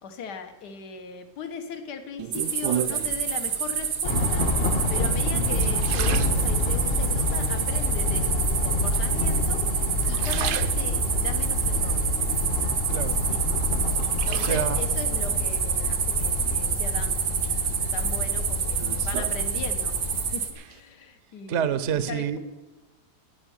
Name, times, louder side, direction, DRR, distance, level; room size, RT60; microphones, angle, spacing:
voice 1, 0.0-4.5 4.9-9.6 10.1-12.0 13.2-13.4 14.1-17.6 17.9-22.4, left 6 dB, 70° left, 8 dB, 1.7 m, -39 dB
sound 1, 2.2-3.3 4.0-4.5 5.1-7.0 7.5-8.1 8.9-9.6 9.9-11.3 11.7-13.0 13.4-15.0 16.4-17.0 17.4-20.0 20.3-20.8, right 10 dB, 75° right, 1.2 m, -36 dB
sound 2, 2.3-20.5, right 7 dB, 90° right, 1.9 m, -28 dB
sound 3, 4.0-20.3, left 2 dB, 40° left, 1.1 m, -27 dB
voice 2, 12.9-13.2 14.3-14.8 21.5-22.4, right 8 dB, 55° right, 13 dB, 0.9 m, -27 dB
15.5 x 5.5 x 10.0 m, 1.2 s
omnidirectional pair, 1.8 m